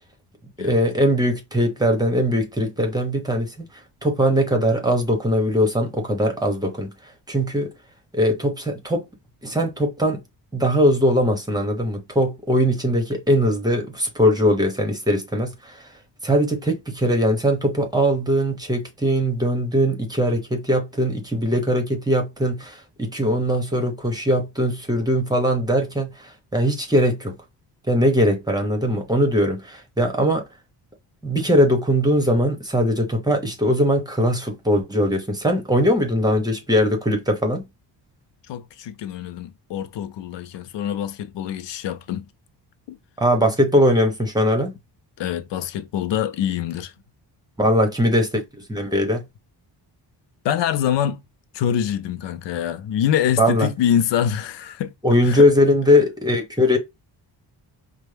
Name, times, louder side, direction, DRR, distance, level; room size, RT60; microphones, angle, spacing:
voice 1, 0.6-3.6 4.0-6.9 7.3-7.7 8.1-9.0 9.4-10.2 10.5-15.9 16.2-27.4 27.9-30.4 31.2-37.6 43.2-44.8 47.6-49.2 53.4-53.7 55.0-56.8, equal, 10° right, 1.2 m, -20 dB
voice 2, 38.5-42.3 42.9-43.0 45.2-46.9 50.4-51.3 51.5-54.9 55.2-55.5, left 9 dB, 80° left, 0.6 m, -25 dB
5.2 x 2.2 x 3.4 m
cardioid pair, 115°, 42 cm